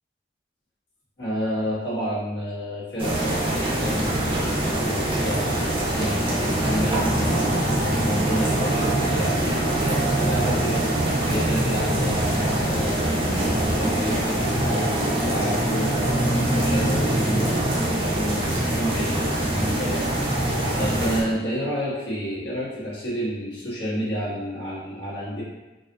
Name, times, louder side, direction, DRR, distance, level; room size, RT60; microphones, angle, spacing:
voice 1, 1.2-25.4, equal, 70° left, -8 dB, 1.4 m, -30 dB
sound 1, 3.0-21.2, right 1 dB, 30° right, 0.6 m, -23 dB
4.1 x 2.4 x 2.6 m, 1.1 s
head